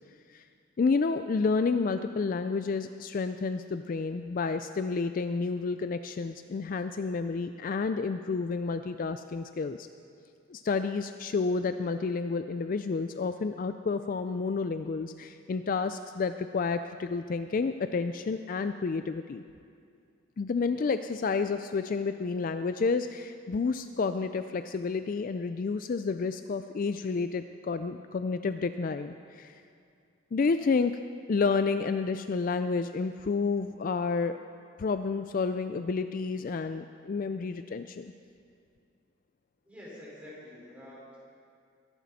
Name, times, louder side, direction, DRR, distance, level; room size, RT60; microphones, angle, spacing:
voice 1, 0.8-9.9 10.5-19.4 20.4-29.6 30.3-31.0 31.3-34.4 34.8-38.1, left 4 dB, 40° left, 10 dB, 0.3 m, -30 dB
voice 2, 39.6-41.2, left 1 dB, 5° right, -7 dB, 4.6 m, -47 dB
22.5 x 11.5 x 4.2 m, 2.3 s
head